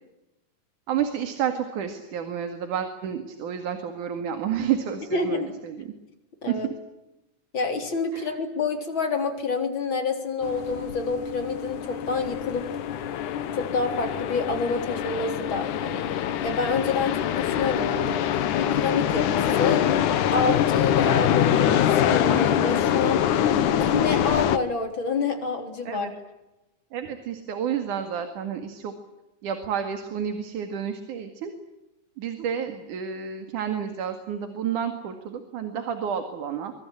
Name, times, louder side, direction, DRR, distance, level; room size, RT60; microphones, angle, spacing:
voice 1, 0.9-5.9 6.5-6.6 8.1-8.3 25.9-26.1 26.9-28.9 29.4-31.5 32.2-36.7, right 8 dB, 90° right, 7 dB, 3.5 m, -30 dB
voice 2, 5.1-5.5 6.4-6.7 7.5-12.7 13.5-16.1 16.4-18.1 18.6-19.9 20.3-23.3 23.8-26.1, left 4 dB, 40° left, 5 dB, 4.4 m, -28 dB
sound 1, 10.4-24.6, left 10 dB, 85° left, 2.7 m, -24 dB
24.5 x 24.5 x 10.0 m, 0.99 s
omnidirectional pair, 3.5 m